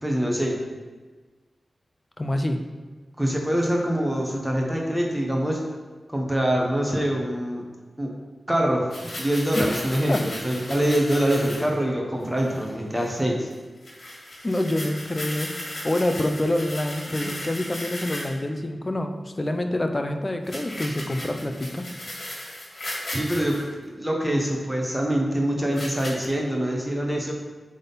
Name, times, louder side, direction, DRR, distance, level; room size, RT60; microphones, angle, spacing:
voice 1, 0.0-0.6 3.2-5.6 6.1-7.7 8.0-8.1 8.5-13.5 17.2-17.3 23.1-27.3, equal, 10° right, -1 dB, 1.1 m, -24 dB
voice 2, 2.2-2.6 9.5-9.7 10.1-10.2 14.4-15.5 15.8-21.9, left 1 dB, 25° left, 5 dB, 0.6 m, -26 dB
sound 1, 8.9-11.7 12.2-12.7 13.0-13.2 13.5-13.6 13.8-18.4 20.4-23.6 24.5-24.6 25.7-26.3, left 1 dB, 55° left, 1.9 m, -36 dB
8.1 x 3.7 x 4.1 m, 1.3 s
wide cardioid pair, 95°, 0 cm